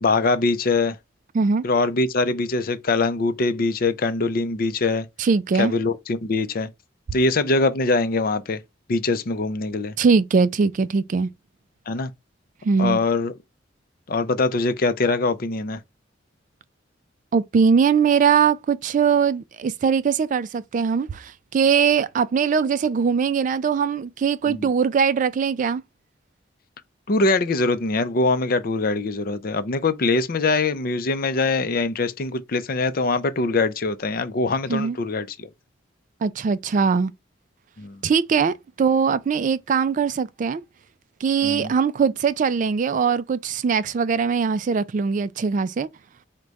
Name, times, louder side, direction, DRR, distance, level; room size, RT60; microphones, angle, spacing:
voice 1, 0.0-1.0 1.6-5.1 5.6-6.7 7.1-8.6 8.9-9.9 11.9-12.1 12.8-13.3 14.1-15.8 24.5-24.7 27.1-35.5 37.8-38.0 41.4-41.7, left 3 dB, 50° left, 0.5 m, -23 dB
voice 2, 5.2-5.7 10.0-11.3 12.6-13.0 17.3-25.8 34.7-35.0 36.2-37.1 38.0-40.6 41.2-45.9, right 6 dB, 45° right, 0.3 m, -21 dB
4.8 x 2.2 x 3.9 m
head